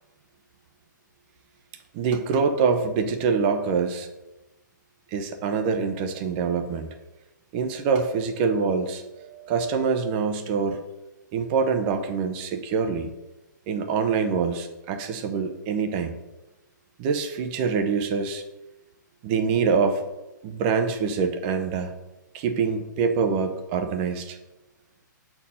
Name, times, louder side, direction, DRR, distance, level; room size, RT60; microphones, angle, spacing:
voice 1, 1.9-4.1 5.1-6.9 7.5-10.8 11.3-13.1 13.7-16.2 17.0-18.4 19.2-20.1 20.4-21.9 22.3-24.4, right 5 dB, 30° right, 7 dB, 0.8 m, -25 dB
7.0 x 4.6 x 5.6 m, 1.0 s
hypercardioid pair, 150°, 11 cm